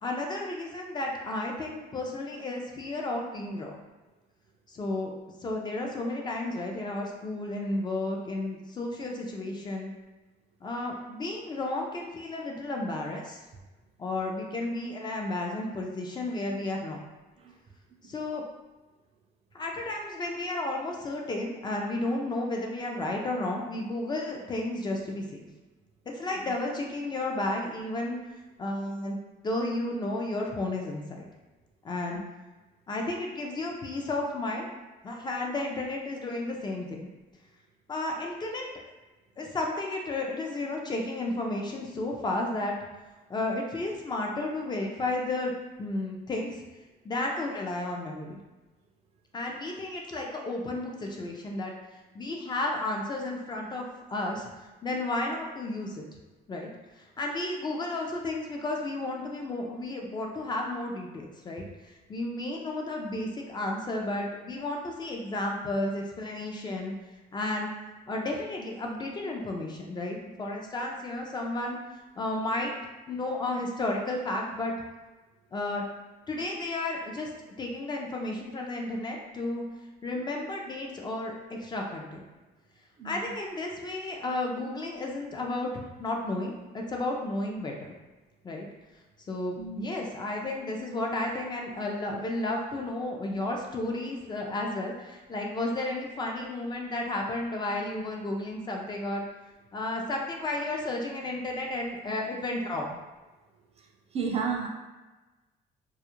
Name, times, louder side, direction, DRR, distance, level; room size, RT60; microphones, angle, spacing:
voice 1, 0.0-3.8 4.7-5.1 5.4-9.9 10.6-13.4 14.0-17.1 18.0-18.4 19.5-25.5 26.1-28.2 28.6-29.2 29.4-31.2 31.8-32.2 32.9-34.7 35.0-37.0 37.9-38.7 39.4-42.7 43.3-45.5 45.8-46.6 47.0-48.4 49.3-51.7 52.1-54.5 54.8-56.0 56.5-56.7 57.0-66.9 67.3-67.7 68.1-71.8 72.2-72.7 73.1-74.7 75.5-75.8 76.3-77.3 77.6-79.6 80.0-82.2 83.0-87.9 88.4-88.7 89.3-99.2 99.7-102.9, left 2 dB, 25° left, 0 dB, 0.4 m, -32 dB
voice 2, 89.6-89.9 104.1-104.7, right 5 dB, 40° right, 1 dB, 0.4 m, -31 dB
2.3 x 2.0 x 2.9 m, 1.2 s
cardioid pair, 110°, 17 cm